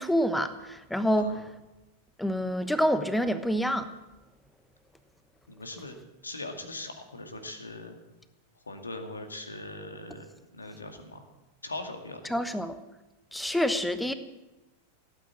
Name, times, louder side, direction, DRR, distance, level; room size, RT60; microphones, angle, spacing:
voice 1, 0.0-1.3 2.2-3.9 12.3-12.8 13.3-14.1, equal, 5° left, 12 dB, 1.1 m, -27 dB
voice 2, 5.5-5.9 6.2-8.0 8.7-10.2 10.5-11.3 11.6-12.4, left 2 dB, 75° left, 6 dB, 2.1 m, -40 dB
17.0 x 9.1 x 8.5 m, 1.1 s
figure-of-eight pair, 90°, 0 cm